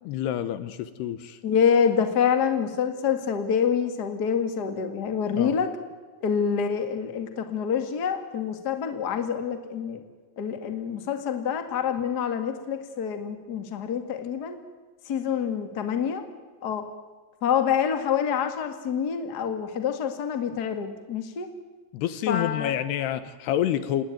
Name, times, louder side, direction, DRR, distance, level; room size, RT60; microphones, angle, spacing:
voice 1, 0.0-1.4 5.4-5.6 21.9-24.0, left 11 dB, 75° left, 13 dB, 2.9 m, -28 dB
voice 2, 1.4-5.7 6.2-10.0 10.4-14.6 15.0-16.2 16.6-16.9 17.4-21.5 22.3-22.7, left 7 dB, 35° left, 7 dB, 1.7 m, -26 dB
27.5 x 20.0 x 9.4 m, 1.4 s
omnidirectional pair, 5.1 m